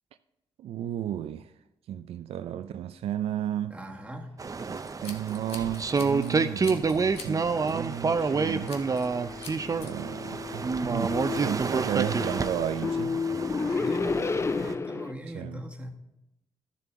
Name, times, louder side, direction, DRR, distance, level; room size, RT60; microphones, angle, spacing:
voice 1, 0.6-1.5 1.9-3.8 5.0-8.8 9.7-13.2 15.3-15.6, right 11 dB, 80° right, 0.4 m, -33 dB
voice 2, 3.7-4.4 13.6-15.9, right 1 dB, 10° right, 1.7 m, -40 dB
sound 1, 4.4-14.7, right 4 dB, 35° right, 0.6 m, -29 dB
Scissors, 4.8-6.3 6.6-7.3 7.7-7.9 8.7-9.1 9.4-9.9, left 5 dB, 75° left, 1.2 m, -44 dB
sound 2, 8.3-15.1, left 4 dB, 25° left, 0.4 m, -32 dB
12.5 x 6.8 x 3.6 m
cardioid pair, 60°, 10 cm